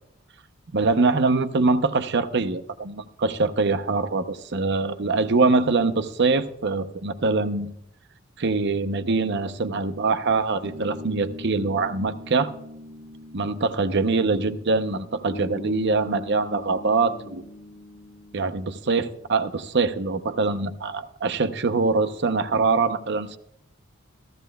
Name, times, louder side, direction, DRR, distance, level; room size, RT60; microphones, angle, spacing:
voice 1, 0.7-7.7 8.4-12.5 13.3-17.5 18.3-23.4, right 3 dB, 55° right, 9 dB, 0.7 m, -23 dB
sound 1, 10.6-17.6, left 1 dB, 25° right, 1.0 m, -43 dB
sound 2, 15.3-19.4, left 1 dB, 75° left, 1.5 m, -41 dB
15.0 x 15.0 x 2.3 m, 0.78 s
head